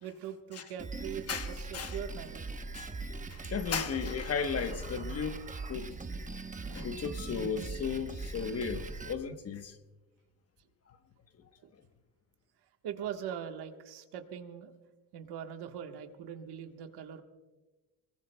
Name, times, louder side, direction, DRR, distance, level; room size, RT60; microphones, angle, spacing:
voice 1, 0.0-2.4 3.1-3.5 6.6-6.9 7.6-7.7 12.8-14.7 15.1-17.2, right 9 dB, 85° right, 1.4 m, -42 dB
Drum kit, 0.8-9.1, right 3 dB, 20° right, 0.9 m, -40 dB
voice 2, 1.3-2.0 2.7-2.9 3.3-5.4 5.7-6.0 6.7-9.7, left 6 dB, 40° left, 1.1 m, -35 dB
24.0 x 21.0 x 2.2 m
cardioid pair, 125°, 39 cm